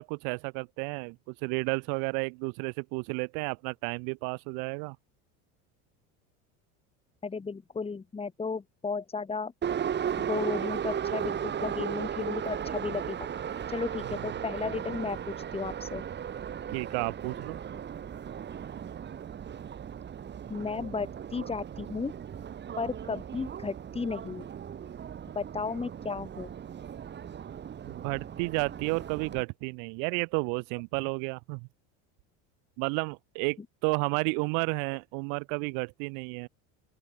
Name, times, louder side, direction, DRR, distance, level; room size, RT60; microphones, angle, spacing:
voice 1, 0.0-5.0 16.7-17.6 27.8-31.6 32.8-36.5, right 40 dB or more, 70° right, 5.4 m, -32 dB
voice 2, 7.2-9.5 10.2-13.3 13.7-16.0 20.5-22.1 22.8-24.5 25.3-26.5, left 4 dB, 15° left, 6.0 m, -34 dB
Subway metro underground, 9.6-29.4, right 8 dB, 30° right, 7.3 m, -36 dB
open air
supercardioid pair, 135°, 35 cm